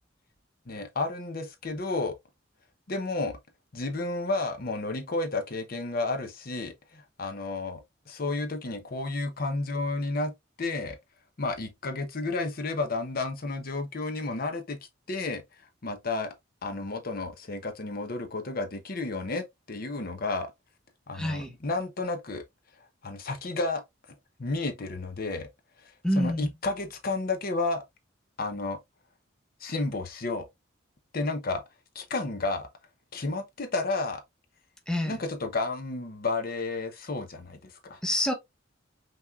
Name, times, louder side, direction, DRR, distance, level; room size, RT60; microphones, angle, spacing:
voice 1, 0.7-2.2 2.9-3.3 3.7-7.8 8.1-10.3 10.6-11.0 11.4-14.8 15.1-15.4 15.8-16.3 16.6-20.5 21.1-22.4 23.0-23.8 24.4-25.5 26.1-27.8 28.4-28.8 29.6-30.5 31.1-31.6 31.9-32.7 33.1-34.2 35.1-38.0, left 3 dB, 50° left, 0.8 m, -31 dB
voice 2, 21.1-21.5 26.0-26.5 34.9-35.2 38.0-38.3, equal, 5° left, 0.9 m, -27 dB
5.8 x 3.4 x 2.3 m
head